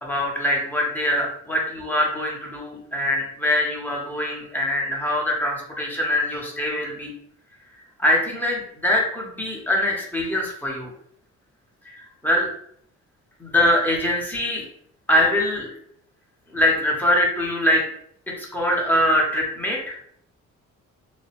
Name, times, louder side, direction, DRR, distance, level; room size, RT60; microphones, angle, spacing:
voice 1, 0.0-7.1 8.0-10.9 12.2-12.5 13.4-14.6 15.1-15.7 16.5-17.8 18.4-20.0, left 1 dB, 5° left, -2 dB, 0.8 m, -23 dB
2.6 x 2.0 x 2.9 m, 0.67 s
cardioid pair, 90°, 30 cm